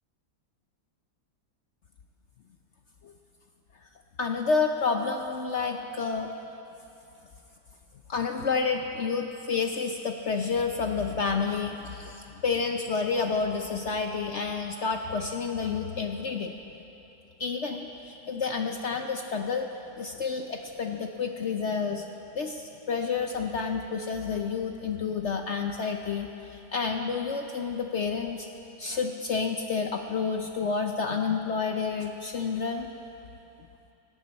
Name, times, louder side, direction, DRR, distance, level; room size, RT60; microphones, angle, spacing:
voice 1, 4.2-6.3 8.1-12.2 12.4-16.5 17.4-19.7 20.0-22.1 22.3-28.5 28.8-32.9, left 5 dB, 70° left, 4 dB, 0.6 m, -29 dB
26.5 x 11.5 x 4.3 m, 2.9 s
omnidirectional pair, 2.0 m